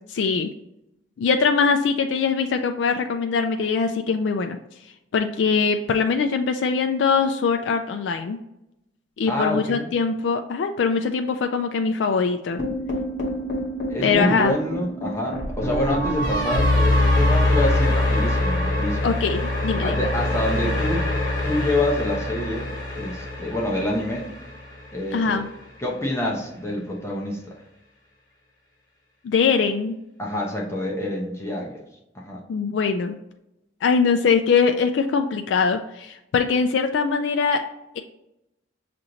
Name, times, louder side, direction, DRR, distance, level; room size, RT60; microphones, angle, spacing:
voice 1, 0.1-0.5 1.2-4.6 5.1-8.4 9.2-12.6 14.0-14.5 19.0-20.1 25.1-25.5 29.2-30.0 32.5-33.1 33.8-37.6, left 5 dB, 75° left, 6 dB, 0.3 m, -22 dB
voice 2, 9.3-9.9 13.9-19.1 19.8-21.1 21.4-22.7 23.0-24.3 24.9-25.4 25.8-27.4 30.2-31.8 32.1-32.4, left 1 dB, 15° left, -2 dB, 0.7 m, -27 dB
sound 1, 12.6-24.8, left 1 dB, 50° left, 1.2 m, -24 dB
6.2 x 2.5 x 2.9 m, 0.87 s
head